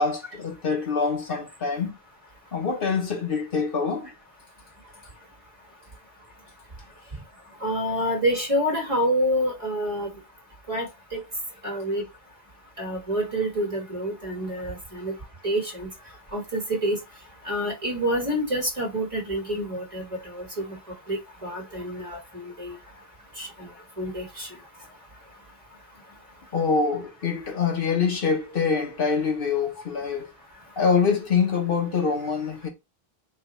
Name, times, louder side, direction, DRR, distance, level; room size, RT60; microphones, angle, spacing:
voice 1, 0.0-2.0 2.5-4.1 26.5-30.3 30.8-32.7, left 5 dB, 60° left, 1.0 m, -25 dB
voice 2, 7.6-10.1 10.7-10.9 11.1-11.2 11.6-12.0 12.8-15.1 15.4-15.9 16.3-17.0 17.4-20.0 20.3-20.8 21.1-22.7 23.4-23.5 24.0-24.5, equal, 35° right, 1.3 m, -27 dB
3.3 x 2.3 x 4.1 m
omnidirectional pair, 1.1 m